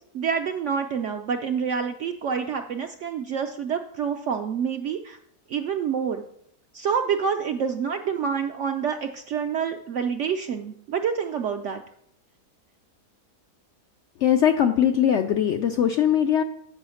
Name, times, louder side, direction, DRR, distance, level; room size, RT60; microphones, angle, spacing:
voice 1, 0.1-5.2 5.5-6.2 6.7-11.8, right 7 dB, 70° right, 6 dB, 0.7 m, -27 dB
voice 2, 14.2-16.4, left 9 dB, 75° left, 6 dB, 0.6 m, -20 dB
7.0 x 4.9 x 6.9 m, 0.70 s
omnidirectional pair, 1.7 m